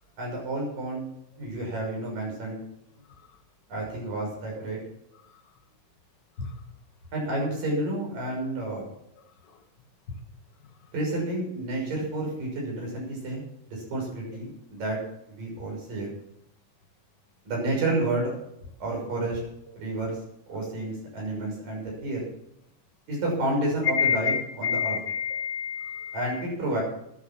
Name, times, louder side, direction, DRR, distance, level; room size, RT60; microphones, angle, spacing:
voice 1, 0.2-1.0 1.4-2.6 3.7-4.8 7.1-8.8 10.9-13.4 13.7-15.0 15.3-16.1 17.4-18.3 18.8-19.4 19.8-20.2 20.5-22.3 23.1-25.0 26.1-26.8, right 1 dB, 70° right, -1 dB, 7.9 m, -30 dB
voice 2, 24.0-26.4, left 7 dB, 35° left, 3 dB, 2.1 m, -28 dB
14.0 x 10.5 x 6.1 m, 0.77 s
omnidirectional pair, 4.1 m